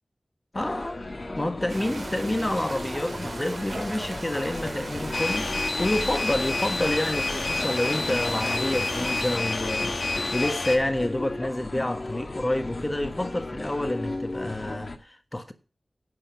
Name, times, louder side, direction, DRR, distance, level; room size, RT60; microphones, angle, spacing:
sound 1, 0.5-15.0, left 2 dB, 50° left, 1.7 m, -35 dB
voice 1, 0.5-1.0 1.3-15.5, left 1 dB, 25° left, 1.5 m, -28 dB
sound 2, 1.7-9.4, right 3 dB, 85° right, 2.7 m, -38 dB
sound 3, 5.1-10.8, left 3 dB, 90° left, 2.1 m, -29 dB
11.0 x 8.4 x 4.7 m
wide cardioid pair, 70°, 0 cm